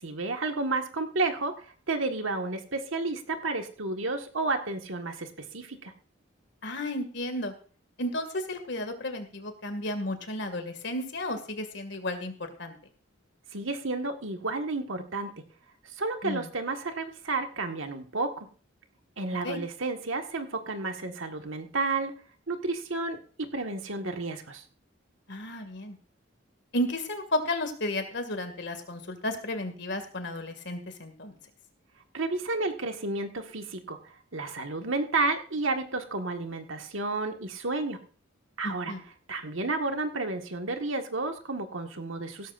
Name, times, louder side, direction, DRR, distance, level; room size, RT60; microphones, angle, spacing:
voice 1, 0.0-5.9 13.5-15.3 16.0-18.5 19.2-22.2 22.5-24.6 32.1-38.0 38.6-38.9 39.3-42.5, right 3 dB, 75° right, 5 dB, 1.6 m, -31 dB
voice 2, 6.6-7.5 8.0-12.3 12.6-12.8 16.2-16.5 19.4-19.6 25.3-26.0 26.7-31.4 38.6-39.0, left 1 dB, 60° left, 7 dB, 2.2 m, -33 dB
16.5 x 13.5 x 2.6 m, 0.41 s
head